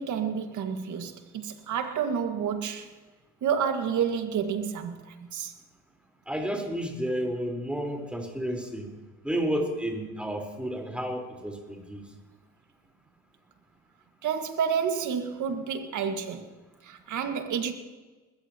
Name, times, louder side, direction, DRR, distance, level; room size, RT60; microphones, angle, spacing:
voice 1, 0.0-2.9 3.4-5.5 14.2-16.5 16.8-17.7, right 7 dB, 60° right, 2.0 m, -29 dB
voice 2, 6.3-8.9 9.2-12.0, equal, 5° right, 4.3 m, -31 dB
21.5 x 14.5 x 3.0 m
supercardioid pair, 65°, 34 cm